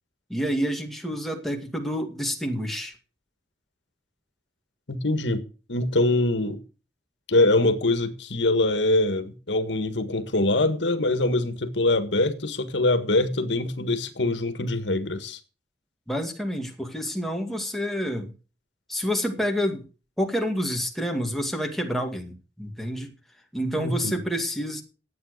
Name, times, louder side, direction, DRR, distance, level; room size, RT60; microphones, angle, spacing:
voice 1, 0.3-2.9 16.1-18.3 18.9-19.8 20.2-23.1 23.5-24.8, equal, ahead, 2.2 m, -28 dB
voice 2, 4.9-5.4 5.7-6.6 7.3-15.4 23.8-24.2, left 2 dB, 75° left, 1.7 m, -23 dB
12.0 x 8.6 x 6.6 m
head